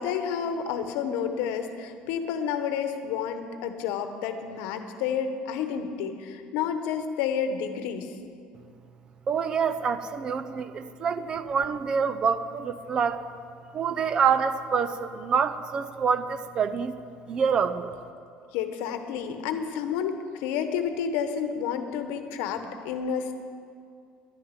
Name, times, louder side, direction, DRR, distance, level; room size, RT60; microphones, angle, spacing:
voice 1, 0.0-8.1 18.5-23.3, left 7 dB, 75° left, 8 dB, 1.0 m, -30 dB
voice 2, 9.3-13.2 13.7-16.9 17.3-17.9, right 6 dB, 25° right, 12 dB, 0.4 m, -26 dB
11.5 x 6.6 x 9.7 m, 2.3 s
cardioid pair, 180°, 3 cm